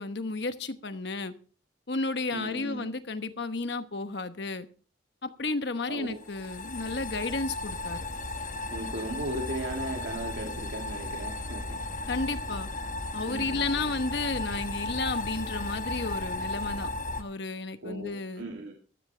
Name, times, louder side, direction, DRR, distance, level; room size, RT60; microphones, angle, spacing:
voice 1, 0.0-1.3 1.9-4.7 5.2-8.0 12.1-12.7 13.1-16.9 17.2-18.4, left 3 dB, 60° left, 10 dB, 1.1 m, -32 dB
voice 2, 2.3-2.9 5.9-6.2 8.7-11.8 13.3-13.9 17.8-18.7, right 1 dB, 80° right, 0 dB, 2.6 m, -37 dB
sound 1, 6.1-17.2, left 2 dB, 40° left, 1.1 m, -35 dB
15.0 x 13.5 x 3.3 m, 0.39 s
head